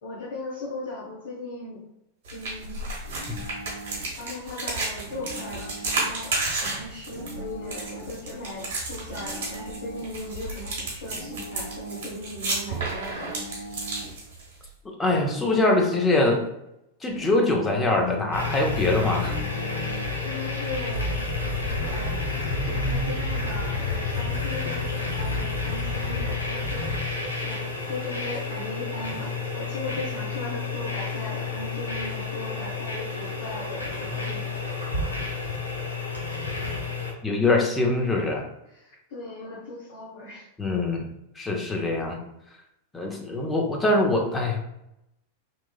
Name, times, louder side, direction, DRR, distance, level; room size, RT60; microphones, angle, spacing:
voice 1, 0.0-1.8 2.3-2.8 4.2-6.3 6.6-13.3 20.2-21.1 21.8-22.2 22.6-26.9 27.4-27.6 27.9-34.6 38.7-40.5, left 2 dB, 65° left, -7 dB, 1.0 m, -38 dB
sound 1, 2.2-14.7, right 2 dB, 65° right, 1.2 m, -32 dB
sound 2, 3.0-4.2 5.0-6.2 7.1-8.2 9.1-10.2 11.1-12.2 13.1-14.2 15.1-16.2 17.1-18.2 19.1-20.2, right 2 dB, 85° right, 0.6 m, -40 dB
voice 2, 15.0-16.5 17.0-19.4 37.2-38.4 40.6-41.1 41.4-42.2 42.9-44.6, left 2 dB, 15° left, 0 dB, 0.7 m, -23 dB
sound 3, 18.3-37.1, left 3 dB, 90° left, 0.6 m, -30 dB
3.0 x 2.3 x 2.3 m, 0.83 s
figure-of-eight pair, 95°, 0 cm